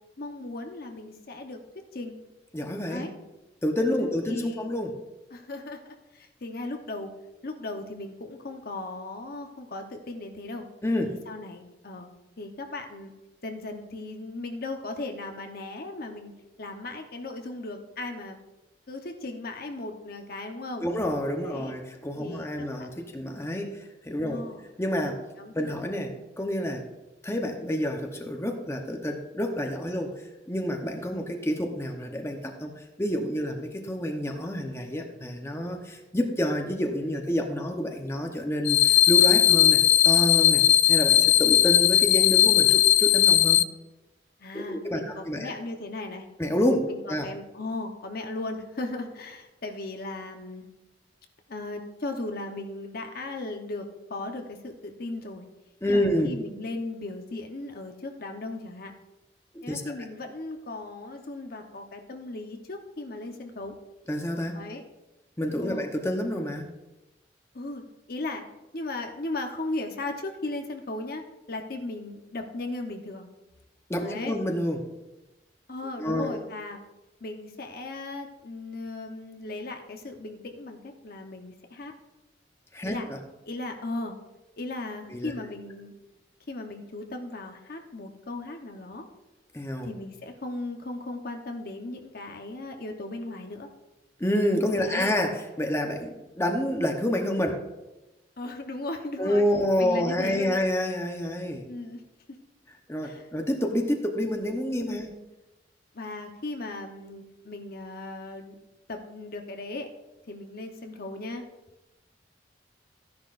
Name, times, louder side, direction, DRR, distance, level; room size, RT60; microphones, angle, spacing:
voice 1, 0.2-2.2 2.9-3.1 3.9-4.7 5.3-7.1 7.4-10.7 11.0-12.1 12.4-13.1 13.4-16.3 16.6-18.4 18.9-20.9 21.4-21.8 22.2-22.5 22.8-23.3 24.2-24.6 25.4-25.8 26.1-26.2 44.4-46.3 46.9-50.7 51.5-55.4 55.9-58.9 59.6-63.8 64.5-64.8 65.6-65.9 67.5-67.8 68.1-68.4 68.7-73.3 74.0-74.3 75.7-76.8 77.2-81.9 82.8-83.1 83.5-84.2 84.6-85.9 86.5-89.1 89.8-93.7 94.8-95.1 98.4-99.4 99.8-100.6 101.7-102.0 103.0-103.3 104.9-105.1 105.9-108.5 108.9-109.9 110.3-111.4, left 2 dB, 55° left, 4 dB, 1.0 m, -37 dB
voice 2, 2.5-3.0 3.6-4.9 10.8-11.1 20.8-24.4 24.8-25.2 25.5-26.8 27.2-39.8 40.0-43.6 44.5-45.5 46.4-47.3 55.8-56.3 59.5-59.9 64.1-64.6 65.4-66.7 73.9-74.9 76.0-76.4 82.7-83.2 85.1-85.3 89.5-89.9 94.2-97.7 99.2-101.6 102.9-105.1, equal, 15° left, 2 dB, 0.9 m, -28 dB
sound 1, 38.7-43.6, left 12 dB, 75° left, 0.3 m, -18 dB
13.5 x 10.5 x 2.5 m, 1.0 s
head